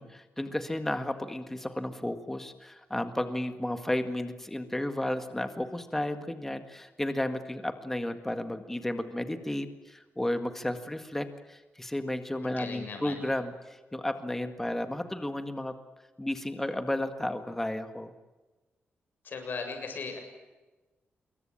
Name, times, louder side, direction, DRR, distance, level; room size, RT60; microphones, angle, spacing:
voice 1, 0.0-15.7 16.2-18.1, left 1 dB, 10° left, 8 dB, 1.8 m, -33 dB
voice 2, 12.4-13.2 19.2-20.2, left 4 dB, 50° left, 5 dB, 7.3 m, -37 dB
26.5 x 23.0 x 8.8 m, 1.2 s
wide cardioid pair, 160°, 4 cm